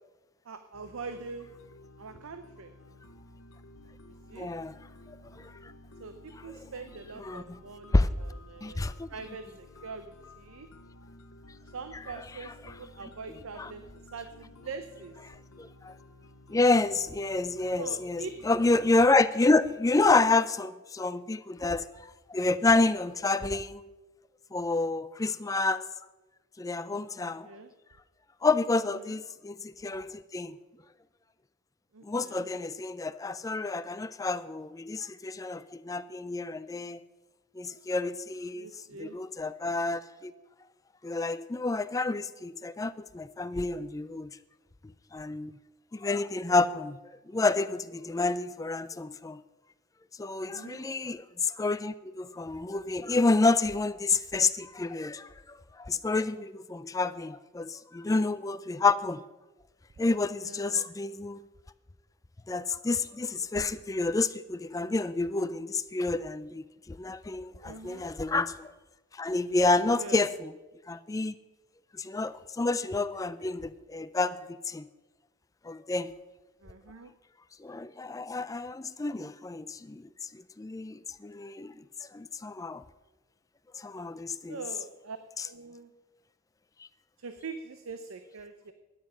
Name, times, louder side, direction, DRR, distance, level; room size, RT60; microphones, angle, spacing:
voice 1, 0.5-1.5 2.0-2.7 4.3-4.5 6.0-10.7 11.7-13.8 14.1-15.1 17.8-18.3 27.4-27.7 29.1-29.2 31.9-32.4 38.6-39.2 50.5-50.9 60.4-60.9 67.6-68.1 70.0-70.2 76.6-77.1 84.5-85.2 85.4-85.9 87.2-88.7, right 4 dB, 75° right, 9 dB, 0.6 m, -43 dB
sound 1, 0.7-18.9, left 2 dB, 90° left, 0.8 m, -53 dB
voice 2, 4.3-4.8 5.1-5.7 6.3-6.6 7.2-7.6 7.9-8.1 8.6-9.1 11.9-12.0 12.3-12.7 13.6-13.7 15.3-16.0 16.5-23.8 24.5-25.9 26.6-27.5 28.4-30.6 32.0-37.0 37.6-38.7 39.0-40.3 41.0-44.3 45.1-45.5 45.9-47.0 47.3-49.4 50.2-59.2 60.0-61.4 62.5-68.7 69.1-70.5 70.9-71.3 71.9-74.9 75.6-76.1 77.6-81.8 82.1-82.8 83.7-84.6 85.4-85.5 86.8-86.9, left 3 dB, 15° left, 13 dB, 0.3 m, -29 dB
12.5 x 9.3 x 5.5 m, 1.1 s
head